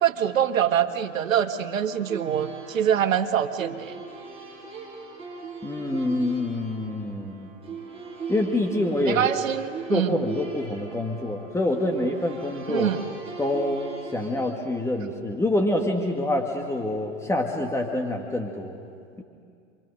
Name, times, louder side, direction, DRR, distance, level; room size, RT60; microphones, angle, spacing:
voice 1, 0.0-4.0 9.1-10.2 12.7-13.0, right 9 dB, 80° right, 7 dB, 1.5 m, -24 dB
sound 1, 1.5-14.3, right 5 dB, 15° right, 6.5 m, -40 dB
voice 2, 5.6-7.5 8.3-9.3 9.9-12.9 13.4-18.8, left 1 dB, 5° left, 1 dB, 1.8 m, -26 dB
29.0 x 25.0 x 6.5 m, 2.3 s
hypercardioid pair, 115°, 39 cm